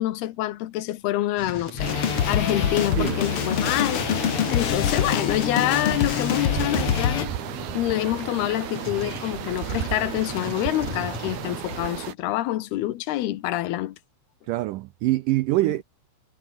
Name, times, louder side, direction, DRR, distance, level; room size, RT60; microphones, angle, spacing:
voice 1, 0.0-4.2 4.5-7.3 7.7-14.0, left 15 dB, 80° left, 3.1 m, -26 dB
sound 1, 1.4-11.9, left 3 dB, 40° left, 8.6 m, -39 dB
sound 2, 1.8-7.3, left 9 dB, 55° left, 1.6 m, -25 dB
sound 3, 1.8-12.1, right 10 dB, 70° right, 3.8 m, -34 dB
voice 2, 14.5-15.8, right 17 dB, 90° right, 1.9 m, -24 dB
omnidirectional pair, 4.6 m